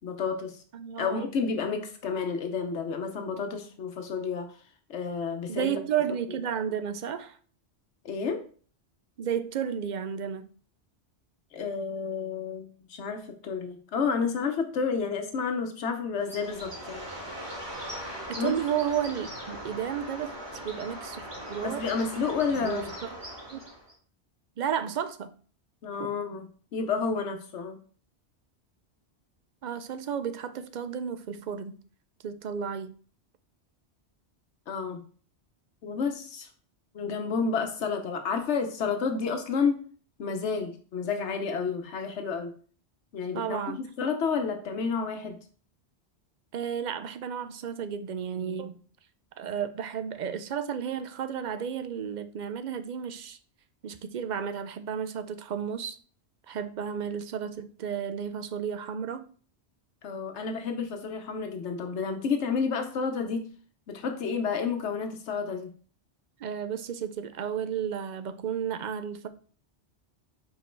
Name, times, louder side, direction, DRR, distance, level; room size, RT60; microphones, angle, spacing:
voice 1, 0.0-0.6 1.0-4.5 4.9-5.8 8.0-8.4 11.5-17.0 18.4-18.5 21.6-22.9 25.8-26.5 26.7-27.8 34.7-35.0 35.8-36.5 36.9-39.8 40.2-42.5 43.1-45.4 60.0-63.4 63.9-65.7, left 5 dB, 80° left, 1.1 m, -30 dB
voice 2, 0.7-1.3 5.5-7.4 9.2-10.5 18.3-21.2 21.5-21.8 22.6-22.9 23.1-23.2 23.5-23.6 24.6-25.3 26.0-26.1 29.6-31.8 32.2-33.0 43.3-43.8 46.5-48.8 49.4-53.4 53.8-56.0 56.5-59.3 66.4-69.3, right 8 dB, 55° right, 0.5 m, -32 dB
Bird, 16.2-23.9, equal, 25° right, 1.6 m, -40 dB
5.2 x 4.6 x 4.4 m
omnidirectional pair, 1.1 m